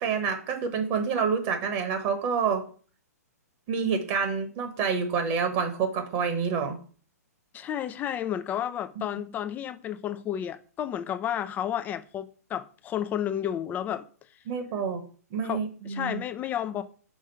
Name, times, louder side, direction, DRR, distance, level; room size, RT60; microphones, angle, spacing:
voice 1, 0.0-2.6 3.7-6.8 14.5-15.0 15.3-16.2, right 6 dB, 40° right, 1.2 m, -28 dB
voice 2, 7.5-14.0 15.4-16.8, left 10 dB, 20° left, 0.4 m, -32 dB
5.1 x 3.6 x 5.5 m
hypercardioid pair, 120°, 9 cm